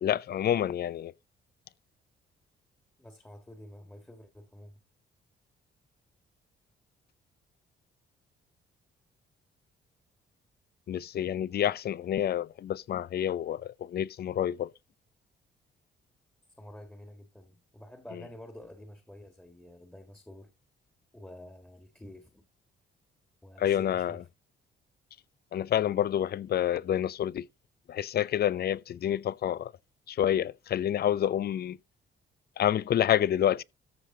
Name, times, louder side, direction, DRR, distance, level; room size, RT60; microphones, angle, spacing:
voice 1, 0.0-1.1 10.9-14.7 23.6-24.2 25.5-27.5 27.9-29.7 30.1-31.8 32.6-33.6, left 10 dB, 55° left, 0.5 m, -28 dB
voice 2, 3.0-4.8 16.6-20.5 21.1-22.4 23.4-24.2, left 1 dB, 5° left, 1.6 m, -49 dB
14.0 x 4.9 x 3.8 m
cardioid pair, 90°, 20 cm